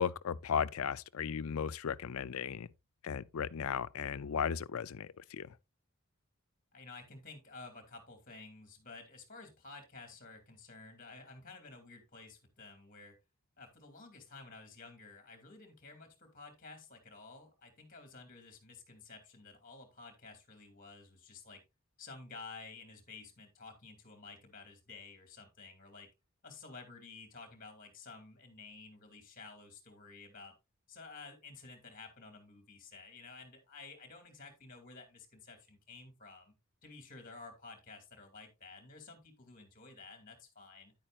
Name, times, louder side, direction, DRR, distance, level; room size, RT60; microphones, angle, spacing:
voice 1, 0.0-2.7 3.0-5.5, left 7 dB, 70° left, 0.4 m, -35 dB
voice 2, 6.7-13.1 13.6-21.6 22.0-26.1 26.4-30.6 30.9-36.5 36.8-40.9, left 3 dB, 40° left, 2.5 m, -52 dB
10.0 x 8.8 x 2.4 m
head